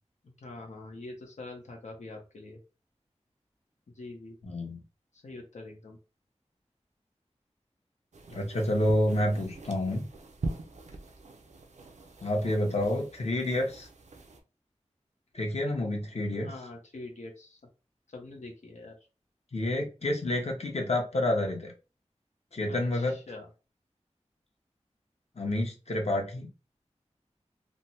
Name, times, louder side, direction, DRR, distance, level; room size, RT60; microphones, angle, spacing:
voice 1, 0.4-2.6 4.0-4.4 5.2-6.0 16.4-17.6 18.1-18.9 22.7-23.5, left 2 dB, 85° left, 0 dB, 0.8 m, -44 dB
voice 2, 4.4-4.8 8.3-10.1 12.2-13.9 15.3-16.5 19.5-21.7 22.5-23.2 25.4-26.5, left 1 dB, 65° left, 1 dB, 1.0 m, -29 dB
sound 1, 8.1-14.4, right 2 dB, 80° right, 0.5 m, -43 dB
3.3 x 2.1 x 2.8 m, 0.32 s
wide cardioid pair, 60°, 12 cm